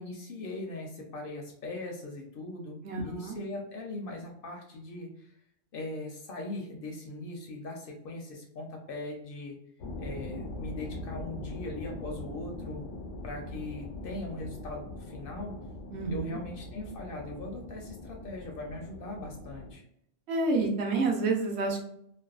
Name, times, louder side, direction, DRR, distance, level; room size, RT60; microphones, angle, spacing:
voice 1, 0.0-5.3 5.7-9.6 10.0-12.9 13.2-15.6 16.1-19.8, left 2 dB, 60° left, 1 dB, 0.7 m, -40 dB
voice 2, 2.8-3.4 15.9-16.4 20.3-21.8, right 3 dB, 70° right, 0 dB, 0.9 m, -29 dB
sound 1, 9.8-19.7, left 2 dB, 90° left, 0.9 m, -42 dB
2.6 x 2.1 x 2.3 m, 0.73 s
omnidirectional pair, 1.2 m